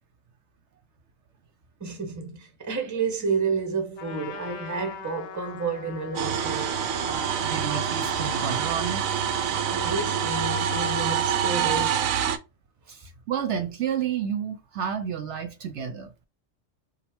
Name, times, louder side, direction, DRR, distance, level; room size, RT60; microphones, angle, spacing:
voice 1, 1.8-6.9 9.7-12.1, right 4 dB, 15° right, 0.7 m, -30 dB
Trumpet, 4.0-8.9, left 5 dB, 65° left, 0.9 m, -41 dB
sound 1, 6.2-12.4, right 8 dB, 85° right, 1.1 m, -26 dB
voice 2, 7.0-9.0 12.9-16.1, right 8 dB, 70° right, 0.8 m, -31 dB
5.5 x 2.2 x 3.4 m
omnidirectional pair, 1.4 m